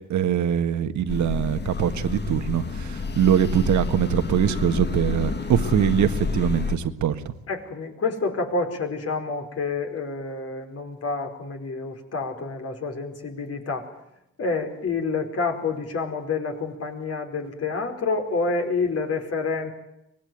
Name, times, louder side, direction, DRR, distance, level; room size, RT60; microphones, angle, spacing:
voice 1, 0.1-7.2, right 10 dB, 70° right, 9 dB, 1.7 m, -23 dB
sound 1, 1.1-6.8, left 4 dB, 35° left, 2.1 m, -29 dB
voice 2, 7.5-13.9 14.4-19.7, left 4 dB, 50° left, 4 dB, 4.9 m, -28 dB
24.0 x 20.0 x 9.4 m, 0.87 s
cardioid pair, 90°, 30 cm